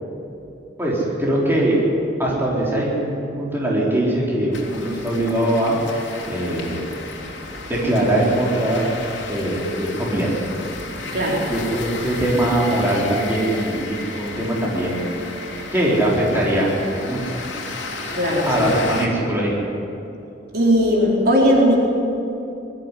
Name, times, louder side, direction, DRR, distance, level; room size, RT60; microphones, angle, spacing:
voice 1, 0.8-1.8 2.2-5.8 6.3-6.8 7.7-8.9 9.3-10.3 11.5-15.3 15.7-16.7 17.0-17.3 18.4-19.5, right 1 dB, 15° right, -5 dB, 4.0 m, -21 dB
sound 1, 4.5-19.1, left 3 dB, 75° left, 3.0 m, -33 dB
voice 2, 10.8-11.5 18.1-18.7 20.5-21.8, equal, 55° right, -3 dB, 4.3 m, -18 dB
21.0 x 13.5 x 9.9 m, 2.8 s
head